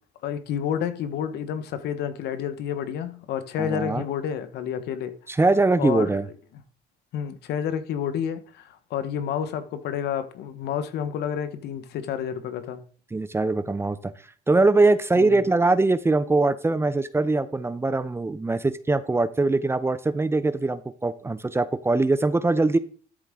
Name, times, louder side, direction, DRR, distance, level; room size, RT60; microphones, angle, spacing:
voice 1, 0.2-5.1 5.8-6.1 7.1-12.8 15.2-15.4, left 8 dB, 75° left, 1.3 m, -29 dB
voice 2, 3.6-4.1 5.3-6.3 13.1-14.1 14.5-22.8, right 3 dB, 15° right, 0.7 m, -22 dB
13.0 x 7.5 x 3.7 m
cardioid pair, 110°, 17 cm